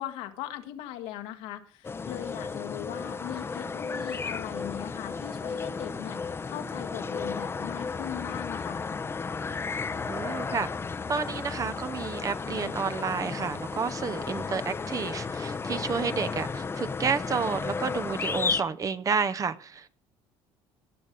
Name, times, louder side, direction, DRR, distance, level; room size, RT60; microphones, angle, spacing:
voice 1, 0.0-8.8, left 12 dB, 85° left, 1.5 m, -39 dB
sound 1, 1.8-18.6, left 4 dB, 20° left, 0.7 m, -33 dB
voice 2, 10.1-10.7 11.1-19.9, right 5 dB, 35° right, 0.7 m, -30 dB
18.5 x 6.4 x 5.2 m
cardioid pair, 100°, 11 cm